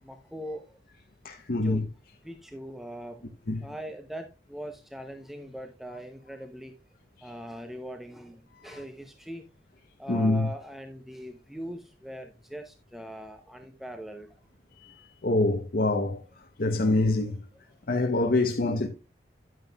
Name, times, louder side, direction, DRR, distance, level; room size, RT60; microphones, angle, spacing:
voice 1, 0.0-0.8 1.6-1.9 2.2-3.3 3.6-6.7 7.2-9.5 10.0-14.4, equal, ahead, 0.7 m, -41 dB
voice 2, 1.2-1.8 3.5-3.6 8.5-8.8 10.1-10.5 14.8-16.2 16.6-17.4 17.9-18.9, left 2 dB, 55° left, 0.8 m, -25 dB
11.0 x 9.2 x 2.3 m
head